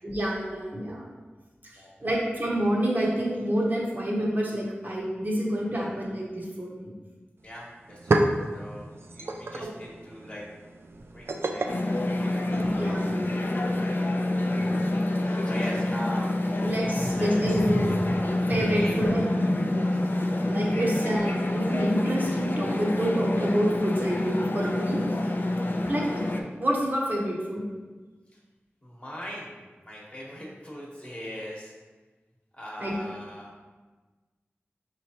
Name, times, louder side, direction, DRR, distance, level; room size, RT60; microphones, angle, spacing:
voice 1, 0.0-1.1 2.0-6.9 12.5-13.4 16.6-19.2 20.4-25.0 25.9-26.0 26.6-27.6 32.8-32.9, equal, 45° right, -4 dB, 0.8 m, -28 dB
voice 2, 7.4-8.3 8.5-10.4 11.1-13.0 13.3-14.1 14.5-16.6 17.0-17.5 18.7-20.1 25.5-25.9 28.3-28.4 28.8-31.7 32.5-33.5, equal, 30° left, -4 dB, 1.1 m, -42 dB
sound 1, 7.4-7.5 7.8-12.9, right 2 dB, 65° right, 0.3 m, -31 dB
sound 2, 11.7-26.4, left 1 dB, 50° left, 0.4 m, -27 dB
5.1 x 3.1 x 2.8 m, 1.3 s
wide cardioid pair, 65°, 4 cm